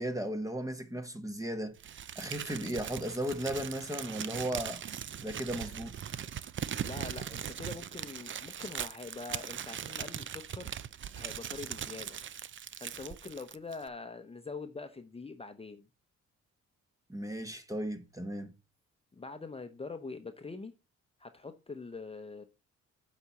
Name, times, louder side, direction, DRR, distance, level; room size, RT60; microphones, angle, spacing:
voice 1, 0.0-1.8 2.1-4.8 5.2-6.2 17.1-18.5, right 1 dB, 10° right, 1.3 m, -36 dB
Crumpling crinkling, 1.8-13.9, right 9 dB, 40° right, 0.5 m, -40 dB
voice 2, 6.8-10.7 11.1-12.2 12.8-15.9 19.1-20.7 21.2-22.4, left 4 dB, 20° left, 0.9 m, -44 dB
7.9 x 4.3 x 7.1 m
cardioid pair, 90°, 30 cm